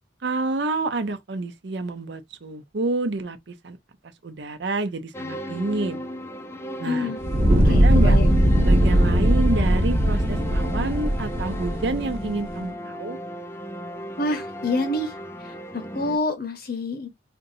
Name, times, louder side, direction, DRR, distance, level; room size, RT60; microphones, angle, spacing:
voice 1, 0.2-3.8 4.2-6.0 6.8-7.1 7.6-8.2 8.6-13.2, right 2 dB, 65° right, 0.6 m, -28 dB
sound 1, 5.1-16.2, left 1 dB, 15° left, 0.5 m, -35 dB
voice 2, 6.8-7.2 7.6-8.4 14.2-15.1 15.4-17.1, left 2 dB, 55° left, 1.0 m, -27 dB
Fire, 7.2-12.4, equal, 35° right, 1.1 m, -19 dB
4.3 x 2.7 x 2.7 m
head